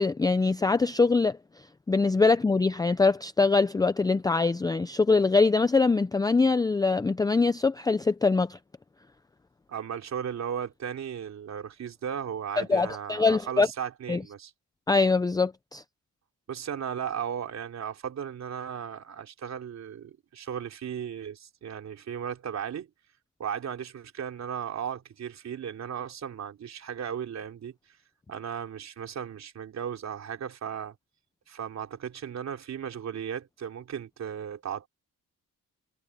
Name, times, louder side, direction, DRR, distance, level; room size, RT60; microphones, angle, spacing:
voice 1, 0.0-8.6 12.6-13.7 14.1-14.2 14.9-15.8, left 4 dB, 10° left, 0.5 m, -23 dB
voice 2, 9.7-14.5 16.5-22.9 23.4-27.7 28.3-30.9 31.5-34.9, right 8 dB, 55° right, 3.5 m, -36 dB
cardioid pair, 130°, 33 cm